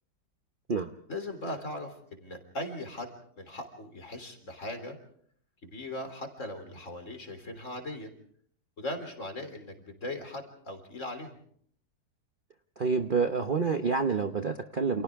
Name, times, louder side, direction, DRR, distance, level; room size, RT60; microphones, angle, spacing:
voice 1, 1.1-3.1 3.4-5.0 5.6-8.1 8.8-11.4, left 1 dB, 45° left, 6 dB, 3.8 m, -39 dB
voice 2, 12.8-15.0, right 5 dB, 40° right, 6 dB, 0.9 m, -28 dB
29.5 x 28.5 x 3.6 m, 0.62 s
omnidirectional pair, 1.8 m